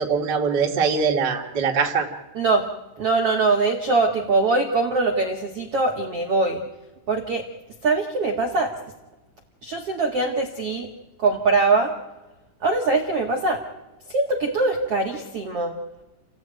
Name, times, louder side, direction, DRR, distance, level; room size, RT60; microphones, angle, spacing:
voice 1, 0.0-2.1, right 5 dB, 35° right, 1 dB, 1.8 m, -22 dB
voice 2, 2.3-2.7 3.0-6.6 7.1-7.4 7.8-8.7 9.6-10.9 11.2-11.9 12.6-13.6 14.1-15.7, right 3 dB, 90° right, 2 dB, 1.3 m, -22 dB
29.0 x 16.5 x 9.1 m, 1.1 s
omnidirectional pair, 5.6 m